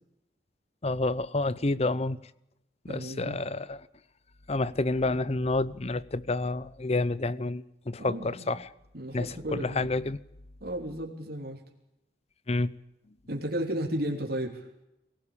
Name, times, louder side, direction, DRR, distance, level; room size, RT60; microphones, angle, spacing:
voice 1, 0.8-2.2 2.8-3.9 4.5-8.7 9.1-10.2 12.5-12.7, left 2 dB, 35° left, 0.8 m, -29 dB
voice 2, 2.9-3.4 8.0-8.5 8.9-9.9 10.6-11.6 13.3-14.7, right 1 dB, 60° right, 3.4 m, -34 dB
23.5 x 17.0 x 8.7 m
head